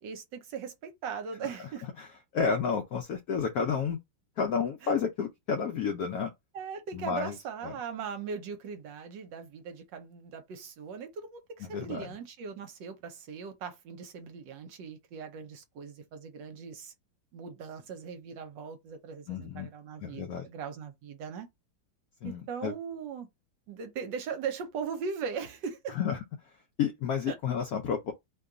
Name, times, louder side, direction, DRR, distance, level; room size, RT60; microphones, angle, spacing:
voice 1, 0.0-1.9 4.8-4.9 6.5-16.9 17.3-21.5 22.2-23.3 23.7-26.0 27.3-27.4, right 6 dB, 70° right, 1.3 m, -39 dB
voice 2, 2.3-4.0 4.4-6.3 6.9-7.3 7.6-7.7 11.7-12.1 19.3-19.7 20.0-20.4 22.2-22.7 26.0-26.2 26.8-28.1, left 6 dB, 75° left, 0.8 m, -31 dB
3.1 x 2.3 x 3.7 m
omnidirectional pair, 2.2 m